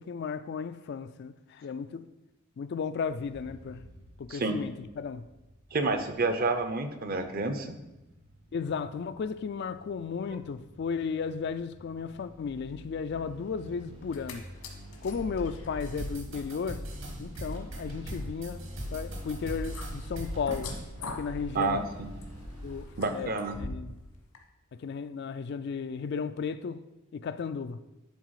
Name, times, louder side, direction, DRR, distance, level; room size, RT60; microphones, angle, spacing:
voice 1, 0.0-2.1 2.6-3.8 4.2-5.3 8.5-14.4 15.0-16.9 17.2-20.7 21.0-21.8 22.6-23.9 24.8-26.9 27.1-27.8, left 5 dB, 50° left, 0.3 m, -35 dB
sound 1, 3.1-22.8, equal, 80° right, 2.5 m, -47 dB
voice 2, 5.7-7.8 21.5-21.8 23.0-23.6, right 3 dB, 40° right, 0.7 m, -29 dB
sound 2, 14.0-14.3 14.6-24.0 24.3-24.4, left 2 dB, 85° left, 1.4 m, -44 dB
sound 3, 15.8-20.8, equal, 55° right, 1.5 m, -40 dB
10.5 x 4.1 x 4.7 m
head